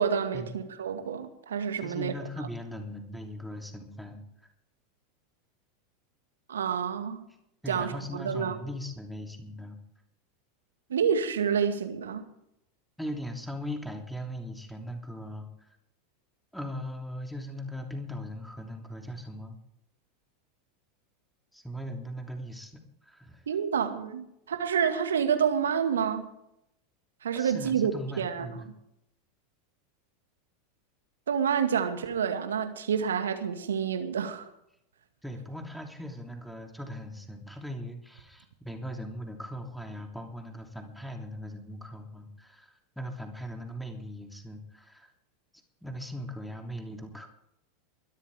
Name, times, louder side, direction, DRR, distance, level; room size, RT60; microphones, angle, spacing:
voice 1, 0.0-2.1 6.5-7.3 7.7-8.6 10.9-12.3 23.5-26.3 27.2-27.9 28.2-28.5 31.3-34.5, right 7 dB, 75° right, 7 dB, 2.0 m, -28 dB
voice 2, 1.8-4.2 7.6-9.8 13.0-15.5 16.5-19.6 21.5-23.4 27.3-28.7 35.2-45.1 45.8-47.3, equal, ahead, 3 dB, 3.1 m, -39 dB
23.0 x 13.0 x 3.7 m, 0.79 s
figure-of-eight pair, 85°, 0 cm